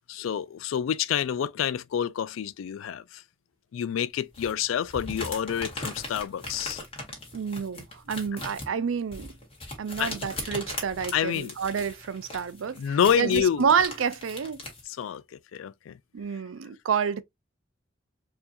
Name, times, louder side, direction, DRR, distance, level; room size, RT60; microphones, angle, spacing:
voice 1, 0.1-3.2 3.7-6.8 10.0-10.1 11.1-11.5 12.8-13.7 14.9-16.0, left 8 dB, 85° left, 0.3 m, -28 dB
sound 1, 4.3-14.8, left 2 dB, 30° left, 1.6 m, -39 dB
voice 2, 7.3-9.3 9.8-14.6 16.1-17.2, right 6 dB, 85° right, 0.4 m, -29 dB
4.4 x 2.7 x 2.6 m
head